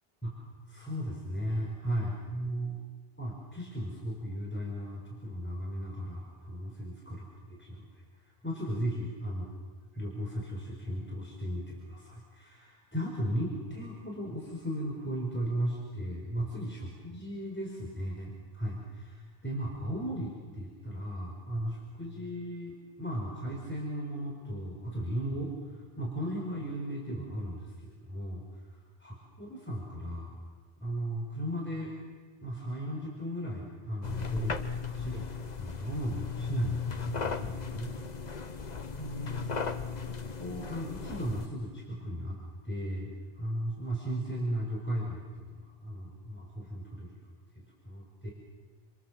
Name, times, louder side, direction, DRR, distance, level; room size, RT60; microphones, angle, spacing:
voice 1, 0.2-2.8 3.2-8.0 8.4-9.5 9.9-28.4 28.7-30.3 30.8-31.9 32.4-37.9 39.0-39.6 40.1-42.4 42.6-47.1 47.5-48.3, equal, 10° left, -2 dB, 5.0 m, -36 dB
sound 1, 34.0-41.5, left 5 dB, 45° left, 1.2 m, -36 dB
29.0 x 26.5 x 7.6 m, 1.4 s
omnidirectional pair, 1.0 m